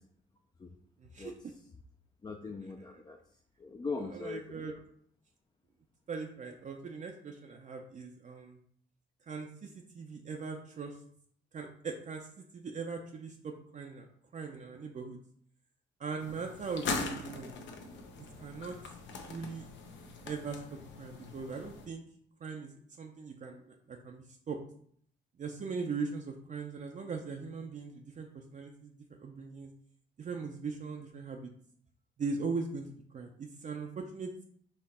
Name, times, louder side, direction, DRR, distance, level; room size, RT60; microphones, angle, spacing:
voice 1, 1.0-1.5 4.1-4.7 6.1-8.6 9.2-11.0 11.5-14.1 14.3-15.2 16.0-17.6 18.4-18.8 19.1-19.7 20.3-22.0 22.4-24.6 25.4-29.7 30.2-31.5 32.2-34.3, right 4 dB, 40° right, 2 dB, 0.5 m, -40 dB
voice 2, 2.2-3.2 3.6-4.6, left 4 dB, 20° left, 2 dB, 0.4 m, -40 dB
sound 1, 16.2-21.9, left 4 dB, 70° left, 0.8 m, -41 dB
4.3 x 2.9 x 4.1 m, 0.63 s
cardioid pair, 90°, 20 cm